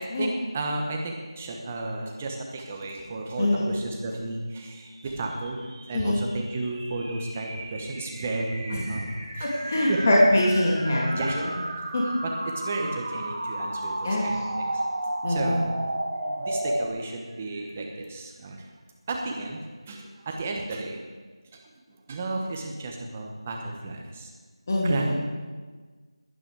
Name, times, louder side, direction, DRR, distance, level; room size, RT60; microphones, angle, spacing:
voice 1, 0.0-10.0 11.1-11.4 12.2-14.8 15.3-15.6 16.2-18.7 19.1-19.6 19.9-21.1 21.5-21.6 22.1-24.3 24.8-25.2, right 2 dB, 15° right, 1 dB, 1.1 m, -33 dB
sound 1, 5.0-16.9, right 1 dB, 60° right, 2.7 m, -33 dB
voice 2, 9.4-11.5 11.9-12.0 14.0-14.5 15.2-15.6 24.7-25.1, left 1 dB, 30° left, -3 dB, 2.2 m, -23 dB
20.5 x 9.0 x 4.8 m, 1.4 s
figure-of-eight pair, 170°, 3 cm